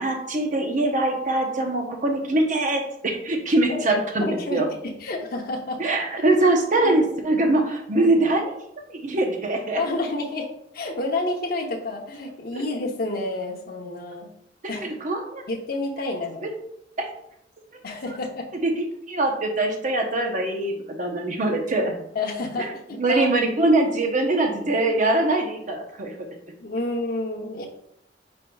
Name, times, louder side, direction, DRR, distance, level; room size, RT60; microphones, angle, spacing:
voice 1, 0.0-4.7 5.8-8.5 8.9-9.8 12.5-12.6 14.8-15.4 16.4-16.5 17.0-17.1 18.6-21.9 22.6-22.7 23.0-26.1, right 2 dB, 45° right, 2 dB, 0.8 m, -23 dB
voice 2, 3.7-5.8 6.8-7.0 9.8-10.5 10.7-14.3 14.7-15.0 15.5-16.5 17.8-18.5 22.1-23.3 26.6-27.7, left 2 dB, 60° left, -1 dB, 0.8 m, -29 dB
5.2 x 4.4 x 2.3 m, 0.74 s
head